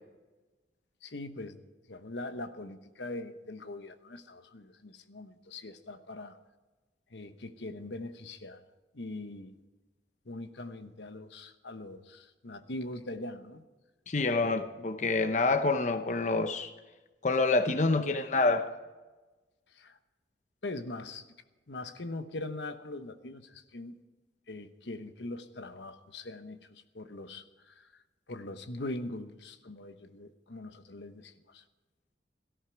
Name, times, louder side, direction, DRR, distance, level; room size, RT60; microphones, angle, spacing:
voice 1, 1.0-1.6 1.9-6.4 7.1-8.6 8.9-9.6 10.3-13.6 14.4-14.6 19.8-20.0 20.6-21.2 21.7-24.0 24.5-27.9 28.3-31.6, left 2 dB, 75° left, 9 dB, 1.1 m, -42 dB
voice 2, 14.1-16.7 17.2-18.7, left 3 dB, 40° left, 9 dB, 0.8 m, -27 dB
17.5 x 14.0 x 4.6 m, 1.2 s
head